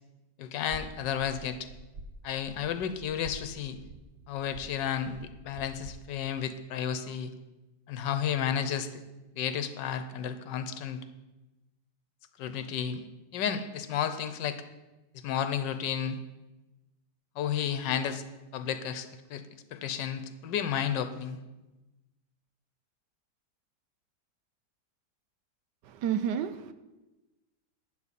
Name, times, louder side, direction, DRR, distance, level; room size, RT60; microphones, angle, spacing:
voice 1, 0.4-1.7 2.2-3.8 4.3-7.3 7.9-9.0 9.4-11.0 12.4-13.0 13.3-14.6 15.2-16.2 17.4-18.2 18.5-19.4 19.7-21.4, left 8 dB, 85° left, 10 dB, 1.4 m, -32 dB
sound 1, 0.6-6.0, right 2 dB, 50° right, 0.9 m, -48 dB
voice 2, 25.9-26.7, right 8 dB, 80° right, 11 dB, 1.3 m, -30 dB
12.0 x 9.4 x 4.2 m, 1.1 s
omnidirectional pair, 1.9 m